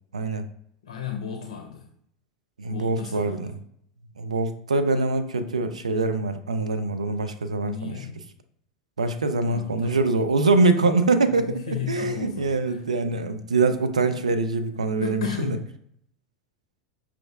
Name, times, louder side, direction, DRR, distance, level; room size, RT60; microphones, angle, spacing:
voice 1, 0.1-0.5 2.6-3.5 4.2-8.0 9.0-15.6, right 3 dB, 80° right, 9 dB, 0.3 m, -24 dB
voice 2, 0.8-1.9 2.7-3.6 7.6-8.2 9.5-10.0 11.3-12.8 15.0-15.7, left 8 dB, 65° left, 4 dB, 0.5 m, -34 dB
5.9 x 2.4 x 2.3 m, 0.69 s
figure-of-eight pair, 80°, 4 cm